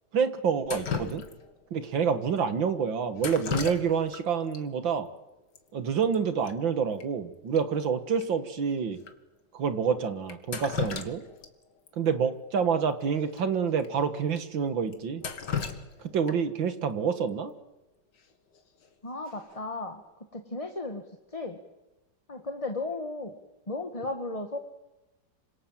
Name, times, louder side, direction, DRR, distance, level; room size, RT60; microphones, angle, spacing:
voice 1, 0.1-1.3 1.7-5.1 5.7-9.0 9.5-11.2 11.9-15.2 16.0-17.5, right 6 dB, 85° right, 10 dB, 2.4 m, -28 dB
Drip, 0.6-1.6 3.2-4.2 4.5-4.6 5.6-5.7 5.9-6.2 6.5-6.6 7.0-7.1 7.5-7.6 8.2-8.3 9.0-9.1 10.3-11.5 11.9-12.0 13.3-13.4 13.8-13.9 14.4-14.5 14.9-16.6 18.6-18.9 19.3-19.7, left 7 dB, 65° left, 2.5 m, -35 dB
voice 2, 19.0-20.0 20.3-21.0 21.3-21.6 22.3-23.3 23.7-24.6, left 2 dB, 20° left, 5 dB, 1.8 m, -35 dB
26.5 x 26.5 x 7.5 m, 1.0 s
omnidirectional pair, 2.0 m